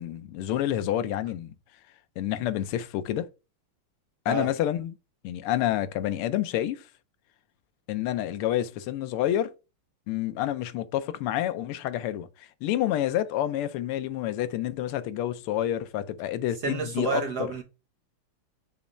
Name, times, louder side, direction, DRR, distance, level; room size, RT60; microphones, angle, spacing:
voice 1, 0.0-1.5 2.2-3.3 4.2-4.9 5.2-6.9 7.9-9.5 10.1-17.2, left 12 dB, 90° left, 1.6 m, -28 dB
voice 2, 16.6-17.6, right 4 dB, 55° right, 1.3 m, -29 dB
6.9 x 3.1 x 5.1 m
omnidirectional pair, 2.4 m